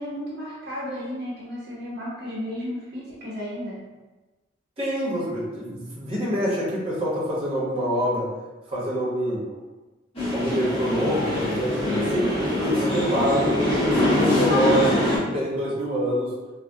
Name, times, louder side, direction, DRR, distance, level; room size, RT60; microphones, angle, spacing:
voice 1, 0.0-3.8, equal, 65° right, -6 dB, 0.7 m, -33 dB
voice 2, 4.8-8.3 8.7-9.4 10.3-16.3, equal, 30° right, -6 dB, 0.9 m, -26 dB
sound 1, 10.2-15.2, left 1 dB, 35° left, 1.1 m, -23 dB
3.3 x 2.1 x 2.6 m, 1.2 s
head